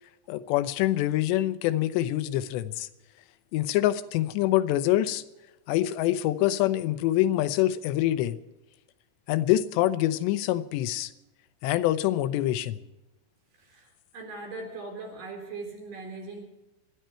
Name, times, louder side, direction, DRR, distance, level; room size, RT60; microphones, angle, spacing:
voice 1, 0.3-2.9 3.5-5.2 5.7-8.4 9.3-11.1 11.6-12.8, left 14 dB, 90° left, 13 dB, 3.0 m, -25 dB
voice 2, 13.6-16.4, right 3 dB, 50° right, 2 dB, 5.3 m, -40 dB
28.5 x 10.5 x 4.5 m, 1.1 s
omnidirectional pair, 4.9 m